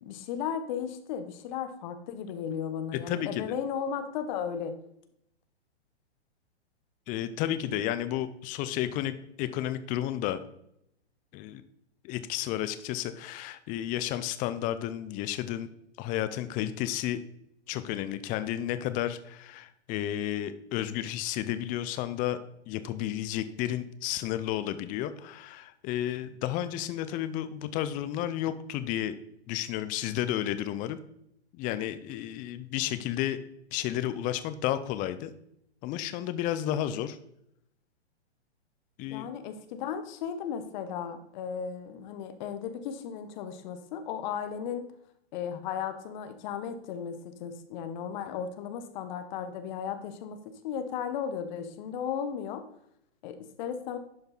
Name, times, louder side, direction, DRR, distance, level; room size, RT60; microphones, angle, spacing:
voice 1, 0.0-4.7 39.1-44.8 45.3-52.6 53.2-54.0, left 8 dB, 40° left, 9 dB, 1.2 m, -35 dB
voice 2, 2.9-3.5 7.1-10.4 11.3-11.6 12.0-15.7 16.0-17.2 17.7-22.4 22.7-29.2 29.5-31.0 31.5-33.4 33.7-35.3 35.8-37.2 39.0-39.3, left 12 dB, 25° left, 12 dB, 0.6 m, -32 dB
11.5 x 5.3 x 4.0 m, 0.77 s
hypercardioid pair, 125°, 34 cm